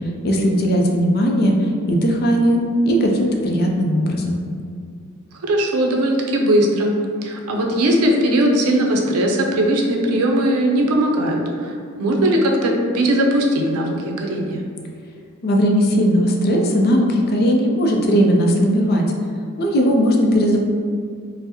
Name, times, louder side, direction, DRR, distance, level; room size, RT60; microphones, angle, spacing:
voice 1, 0.2-1.5 1.9-4.4 15.4-19.0 19.6-20.6, equal, 45° left, 1 dB, 0.4 m, -17 dB
voice 2, 5.5-7.0 7.2-14.6, right 1 dB, 85° right, 1 dB, 0.5 m, -19 dB
4.4 x 2.0 x 2.9 m, 2.3 s
head